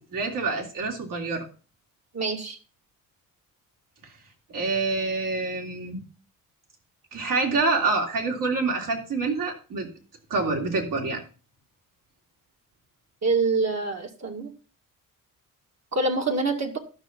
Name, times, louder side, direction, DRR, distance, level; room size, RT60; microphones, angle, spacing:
voice 1, 0.1-1.5 4.5-6.0 7.1-9.9 10.3-11.2, right 3 dB, 65° right, 2 dB, 3.1 m, -26 dB
voice 2, 2.1-2.6 13.2-14.5 15.9-16.8, right 3 dB, 50° right, 1 dB, 2.1 m, -25 dB
12.5 x 6.0 x 5.3 m, 0.36 s
cardioid pair, 105°, 34 cm